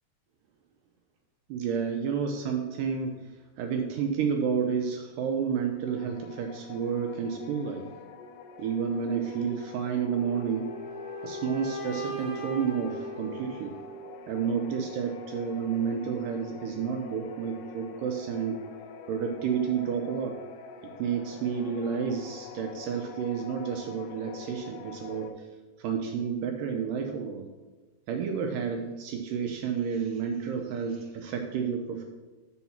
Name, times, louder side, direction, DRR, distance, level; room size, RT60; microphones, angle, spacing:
voice 1, 1.5-3.2 3.6-7.9 8.6-10.7 11.2-13.8 14.3-18.6 19.1-20.4 20.8-25.5 25.8-27.5 28.1-32.0, right 6 dB, 80° right, 4 dB, 2.0 m, -30 dB
sound 1, 5.8-25.3, left 5 dB, 75° left, 2.2 m, -46 dB
sound 2, 10.1-14.1, equal, 50° left, 1.0 m, -39 dB
8.2 x 4.6 x 5.8 m, 1.2 s
omnidirectional pair, 4.4 m